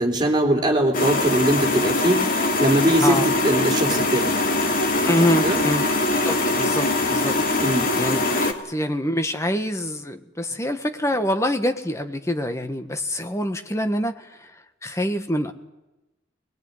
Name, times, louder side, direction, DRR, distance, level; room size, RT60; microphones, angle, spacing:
voice 1, 0.0-4.3 5.2-5.6 7.6-7.9, right 1 dB, 25° right, 2 dB, 3.8 m, -21 dB
sound 1, 0.9-8.5, left 2 dB, 50° left, 2.8 m, -22 dB
voice 2, 5.1-5.9 6.2-7.5 8.0-14.3 14.8-15.5, left 1 dB, 15° left, 8 dB, 1.4 m, -25 dB
22.5 x 20.5 x 9.7 m, 1.0 s
head